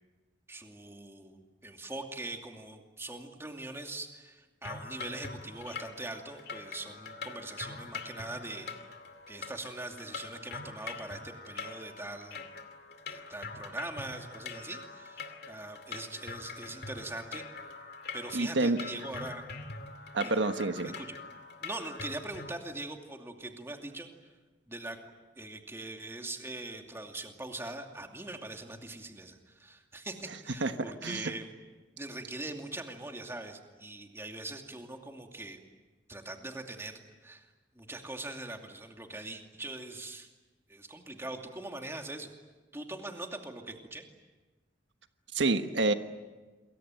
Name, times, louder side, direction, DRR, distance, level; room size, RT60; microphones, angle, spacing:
voice 1, 0.5-8.7 9.3-12.5 13.1-17.5 18.1-19.4 20.2-20.4 20.8-21.1 21.6-24.1 24.7-25.0 25.4-31.5 32.0-35.6 36.1-37.5 37.7-40.3 40.7-42.3 42.7-44.0, right 2 dB, 15° right, 3 dB, 2.6 m, -42 dB
sound 1, 4.6-22.5, left 4 dB, 60° left, 2.5 m, -44 dB
voice 2, 18.3-18.8 20.1-20.9 30.6-30.7 31.0-31.3 45.3-45.9, right 2 dB, 80° right, 8 dB, 1.3 m, -28 dB
28.0 x 22.5 x 9.1 m, 1.3 s
head